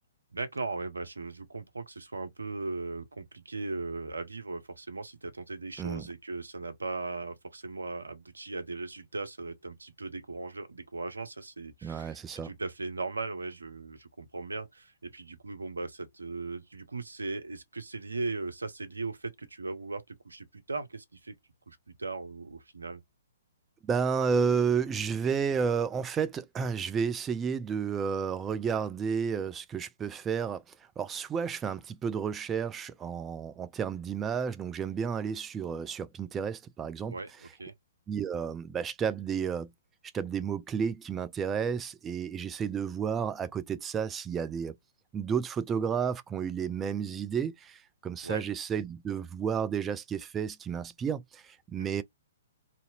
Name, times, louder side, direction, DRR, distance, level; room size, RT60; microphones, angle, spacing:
voice 1, 0.3-21.4 21.7-23.0 37.1-37.7 48.2-48.4 51.8-52.0, right 3 dB, 75° right, 0.7 m, -38 dB
voice 2, 11.8-12.5 23.8-30.6 31.0-37.1 38.1-39.7 40.1-44.7 45.1-52.0, right 6 dB, 15° right, 0.3 m, -31 dB
2.7 x 2.5 x 2.8 m
figure-of-eight pair, 120°, 0 cm